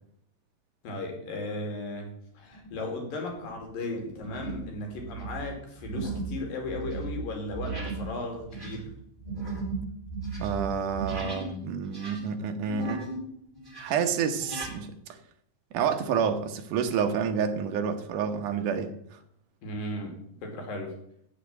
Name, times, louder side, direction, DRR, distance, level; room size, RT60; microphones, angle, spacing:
voice 1, 0.8-8.9 19.6-20.9, left 2 dB, 75° left, 2 dB, 4.4 m, -36 dB
sound 1, 2.5-2.9 3.4-3.6 4.2-4.7 5.0-11.5 11.8-13.3 13.5-14.7, right 4 dB, 5° right, 3.8 m, -36 dB
voice 2, 10.4-13.0 13.8-15.2 15.7-19.2, right 6 dB, 70° right, 6 dB, 2.6 m, -29 dB
14.0 x 5.1 x 9.0 m, 0.70 s
omnidirectional pair, 4.0 m